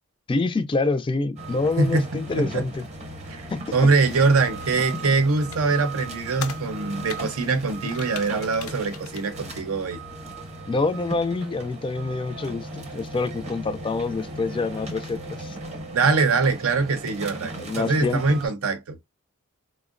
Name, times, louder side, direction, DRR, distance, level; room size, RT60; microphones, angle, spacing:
voice 1, 0.3-2.9 3.5-3.6 10.7-15.6 17.6-18.4, left 3 dB, 25° left, 0.3 m, -26 dB
sound 1, 1.4-18.5, right 1 dB, 30° right, 0.7 m, -37 dB
voice 2, 1.8-2.1 2.4-2.6 3.3-10.0 15.9-19.0, right 3 dB, 80° right, 0.6 m, -23 dB
sound 2, 4.0-9.3, left 7 dB, 80° left, 0.5 m, -42 dB
3.6 x 2.0 x 2.4 m
head